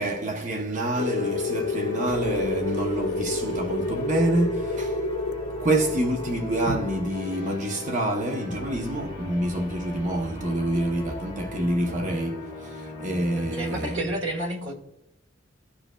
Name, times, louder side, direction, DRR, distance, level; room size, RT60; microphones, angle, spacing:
voice 1, 0.0-5.0 5.6-14.0, right 1 dB, 40° right, 0.7 m, -27 dB
sound 1, 0.9-14.0, left 2 dB, 25° left, 1.6 m, -39 dB
sound 2, 1.0-9.3, left 3 dB, 60° left, 0.5 m, -31 dB
voice 2, 13.3-14.7, right 1 dB, 70° right, 1.3 m, -31 dB
14.5 x 4.9 x 2.2 m
head